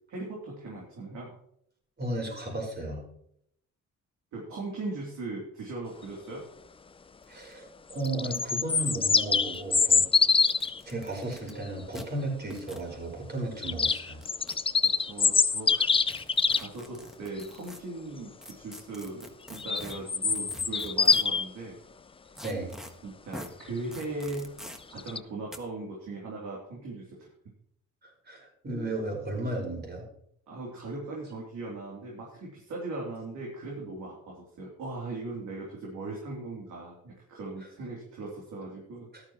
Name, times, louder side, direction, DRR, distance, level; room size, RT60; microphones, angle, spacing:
voice 1, 0.1-1.3 4.3-6.4 14.8-16.0 16.6-21.8 23.0-24.6 24.9-27.3 30.5-39.1, right 2 dB, 75° right, -3 dB, 3.1 m, -39 dB
voice 2, 2.0-3.0 7.3-7.6 7.9-10.0 10.8-14.2 22.4-22.8 28.0-30.1 39.1-39.2, right 2 dB, 35° right, 0 dB, 4.9 m, -34 dB
sound 1, 7.2-7.3 7.5-7.6 8.0-8.1 8.3-9.8 10.4-11.5 11.9-12.0 12.5-12.9 14.0-14.9 16.1-17.8 18.4-21.4 22.4-22.9 23.3-23.5 23.9-24.8 25.5-25.6, equal, ahead, 1.4 m, -45 dB
sound 2, 7.9-10.8 13.6-16.7 19.6-21.4 25.0-25.2, left 5 dB, 20° left, 0.4 m, -24 dB
13.5 x 12.0 x 3.0 m, 0.71 s
cardioid pair, 90°, 30 cm